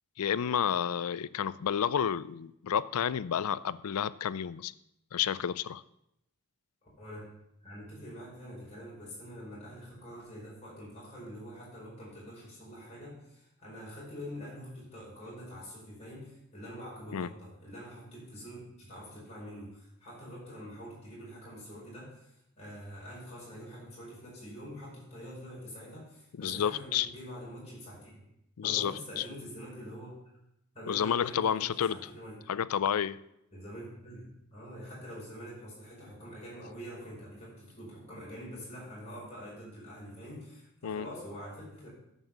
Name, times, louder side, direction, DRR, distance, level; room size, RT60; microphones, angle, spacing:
voice 1, 0.2-4.7 5.1-5.8 17.1-17.3 26.4-27.1 28.6-29.2 30.9-32.0 32.5-33.2 40.8-41.1, left 8 dB, 85° left, 18 dB, 0.4 m, -30 dB
voice 2, 7.0-7.3 7.6-28.3 28.6-30.2 30.7-32.5 33.5-41.9, equal, 30° left, -6 dB, 5.2 m, -45 dB
11.0 x 5.6 x 7.1 m, 0.79 s
head